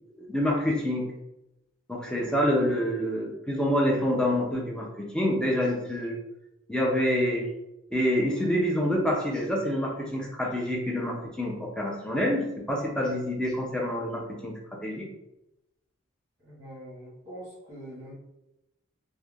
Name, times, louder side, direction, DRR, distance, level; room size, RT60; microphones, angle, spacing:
voice 1, 0.2-1.1 1.9-6.2 6.7-7.5 7.9-14.5 14.8-15.1, equal, 5° left, -2 dB, 0.4 m, -27 dB
voice 2, 16.4-18.1, right 1 dB, 20° right, -10 dB, 0.9 m, -43 dB
2.4 x 2.1 x 3.2 m, 0.90 s
head